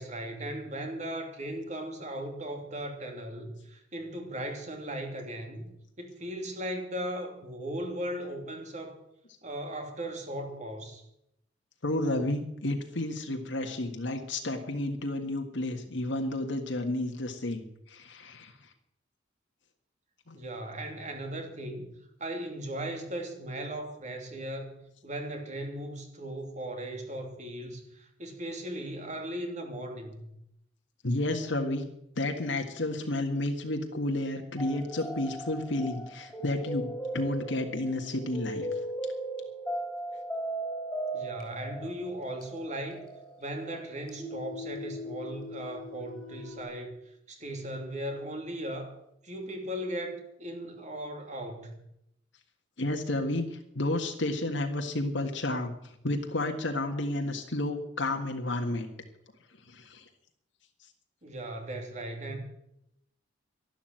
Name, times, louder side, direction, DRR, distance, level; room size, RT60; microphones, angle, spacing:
voice 1, 0.0-5.7 6.0-9.0 9.4-11.0 20.3-21.9 22.2-30.4 41.1-43.0 43.4-47.0 47.3-48.9 49.2-51.9 61.2-62.4, right 1 dB, 40° right, 4 dB, 3.0 m, -37 dB
voice 2, 11.8-18.5 20.3-20.4 31.0-31.8 32.2-38.7 52.8-58.9 59.7-60.0, left 1 dB, 75° left, 4 dB, 1.7 m, -31 dB
sound 1, 34.6-46.6, right 1 dB, 5° left, 3.7 m, -38 dB
12.5 x 12.0 x 7.8 m, 0.78 s
head